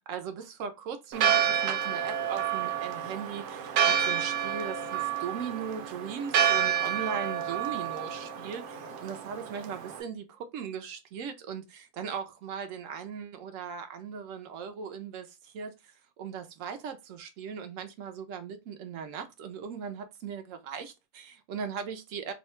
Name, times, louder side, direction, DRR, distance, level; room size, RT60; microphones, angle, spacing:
voice 1, 0.0-22.3, right 7 dB, 65° right, 0.9 m, -38 dB
Church bell, 1.1-10.0, right 8 dB, 85° right, 1.2 m, -29 dB
2.8 x 2.3 x 4.2 m
omnidirectional pair, 1.7 m